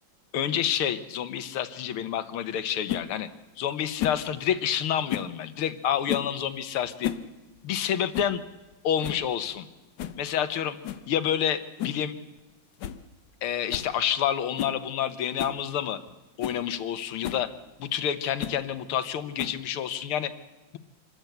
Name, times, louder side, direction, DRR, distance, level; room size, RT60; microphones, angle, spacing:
voice 1, 0.3-3.3 3.6-7.1 7.6-8.4 8.8-9.7 10.2-10.8 11.1-12.2 13.4-16.0 16.4-17.5 17.8-20.3, left 9 dB, 85° left, 11 dB, 1.9 m, -28 dB
sound 1, 2.9-3.1 4.0-4.3 5.1-5.4 6.1-6.4 6.9-7.3 7.6-7.7 8.1-8.4 8.7-8.8 9.0-9.3 10.0-10.2 10.8-11.1 11.8-12.1 12.4-12.5 12.8-13.0 13.3-13.4 13.7-13.9 14.6-14.8 15.4-15.6 16.1-16.2 16.4-16.6 17.2-17.5 18.4-18.6 19.4-19.7, left 11 dB, 65° left, 1.4 m, -33 dB
26.0 x 13.0 x 7.9 m, 1.1 s
omnidirectional pair, 2.3 m